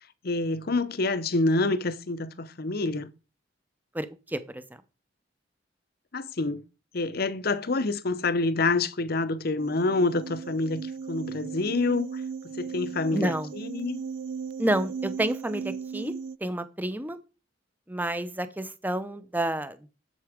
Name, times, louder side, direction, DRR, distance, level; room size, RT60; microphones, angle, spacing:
voice 1, 0.2-3.1 6.1-6.6 6.9-14.0, left 3 dB, 55° left, 0.8 m, -27 dB
voice 2, 3.9-4.6 13.1-13.5 14.6-16.1 16.4-17.2 17.9-19.9, right 1 dB, 10° right, 0.8 m, -29 dB
sound 1, 9.6-16.4, right 6 dB, 90° right, 0.4 m, -37 dB
8.0 x 7.0 x 5.1 m
head